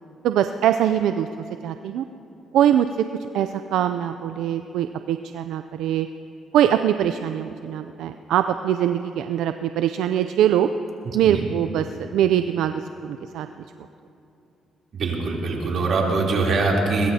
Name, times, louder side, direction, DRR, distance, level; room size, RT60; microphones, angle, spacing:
voice 1, 0.2-1.3 1.6-2.0 2.5-3.1 3.3-6.1 6.5-10.7 11.1-13.5, right 10 dB, 85° right, 9 dB, 0.4 m, -22 dB
voice 2, 11.0-11.4 14.9-17.1, right 3 dB, 60° right, -2 dB, 3.2 m, -23 dB
22.0 x 22.0 x 2.8 m, 2.7 s
cardioid pair, 90°, 0 cm